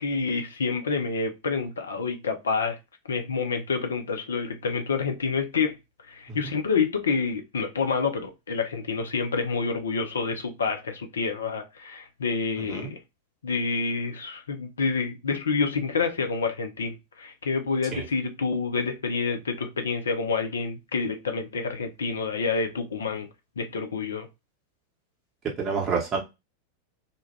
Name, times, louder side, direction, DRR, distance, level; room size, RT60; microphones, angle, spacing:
voice 1, 0.0-2.8 3.1-5.8 6.0-13.0 13.4-23.3 23.6-24.3, left 4 dB, 70° left, 0.5 m, -28 dB
voice 2, 12.6-12.9 17.9-18.0 25.6-26.2, right 5 dB, 25° right, 0.9 m, -29 dB
2.2 x 2.1 x 3.2 m
figure-of-eight pair, 90°, 0 cm